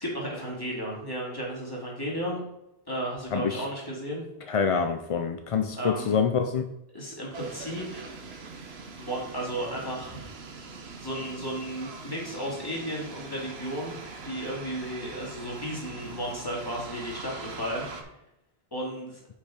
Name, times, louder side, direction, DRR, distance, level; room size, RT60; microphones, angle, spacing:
voice 1, 0.0-2.4 2.9-4.2 5.7-6.2 6.9-8.1 9.0-10.2 11.0-14.0 14.2-18.0 18.7-19.2, equal, 20° left, -4 dB, 2.4 m, -34 dB
voice 2, 3.3-3.6 4.5-6.6, left 6 dB, 50° left, 7 dB, 0.4 m, -26 dB
sound 1, 7.3-18.0, right 4 dB, 85° right, 1.2 m, -42 dB
6.5 x 5.8 x 4.9 m, 0.85 s
omnidirectional pair, 1.0 m